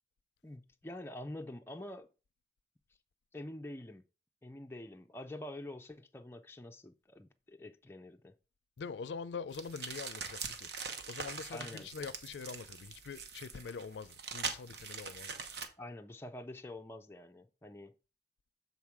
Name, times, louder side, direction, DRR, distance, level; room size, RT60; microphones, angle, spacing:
voice 1, 0.4-2.1 3.3-4.0 4.4-8.3 11.5-11.9 15.8-17.9, left 1 dB, 15° left, 0.4 m, -46 dB
voice 2, 8.8-10.7 11.1-15.3, left 5 dB, 80° left, 0.4 m, -44 dB
sound 1, 9.5-15.7, right 5 dB, 65° right, 0.9 m, -43 dB
7.3 x 4.0 x 4.7 m
head